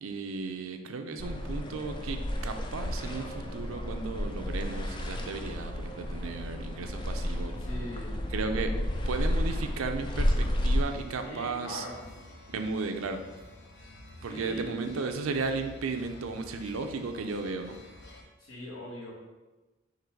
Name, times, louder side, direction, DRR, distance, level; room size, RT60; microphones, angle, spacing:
voice 1, 0.0-7.6 8.3-8.7 9.1-11.9 12.5-13.2 14.2-17.8, right 4 dB, 85° right, 6 dB, 0.5 m, -35 dB
sound 1, 1.2-10.8, left 1 dB, 25° left, 0.3 m, -31 dB
voice 2, 7.5-8.2 8.7-8.8 11.2-12.0 14.3-14.8 18.4-19.1, equal, 75° left, -4 dB, 1.3 m, -41 dB
sound 2, 10.8-18.2, left 1 dB, 55° left, 0.6 m, -50 dB
3.9 x 3.0 x 4.5 m, 1.2 s
head